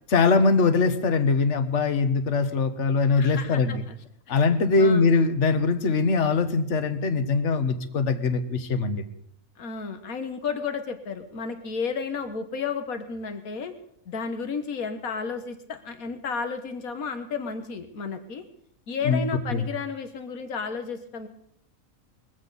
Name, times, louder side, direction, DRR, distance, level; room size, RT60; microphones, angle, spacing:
voice 1, 0.1-3.8 4.3-9.0 19.0-19.2 19.5-19.6, left 4 dB, 55° left, 10 dB, 1.6 m, -22 dB
voice 2, 3.2-3.9 4.3-4.4 4.8-5.0 9.6-13.7 14.1-18.4 18.9-21.3, left 5 dB, 85° left, 8 dB, 1.8 m, -32 dB
22.0 x 15.5 x 4.1 m, 0.72 s
omnidirectional pair, 1.5 m